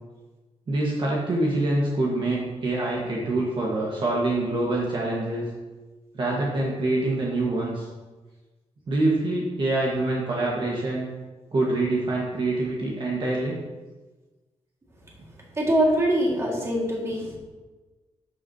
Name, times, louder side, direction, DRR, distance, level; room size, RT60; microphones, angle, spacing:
voice 1, 0.7-5.4 6.1-7.9 8.9-11.1 11.5-13.6, right 2 dB, 45° right, -4 dB, 1.4 m, -25 dB
voice 2, 15.6-17.4, right 1 dB, 25° right, -3 dB, 1.9 m, -23 dB
12.5 x 6.4 x 2.8 m, 1.2 s
wide cardioid pair, 145°, 12 cm